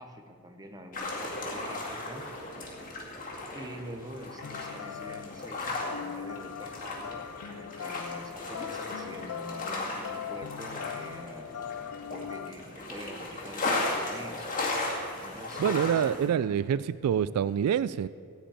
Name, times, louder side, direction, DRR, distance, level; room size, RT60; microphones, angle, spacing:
voice 1, 0.0-2.3 3.5-11.5 12.1-14.5 14.8-16.4, right 1 dB, 15° right, 5 dB, 0.9 m, -45 dB
sound 1, 0.9-16.3, left 2 dB, 40° left, 2.2 m, -36 dB
sound 2, 4.4-12.5, left 9 dB, 75° left, 0.4 m, -40 dB
voice 2, 15.6-18.1, right 8 dB, 80° right, 17 dB, 0.3 m, -26 dB
15.5 x 5.2 x 8.8 m, 2.3 s
head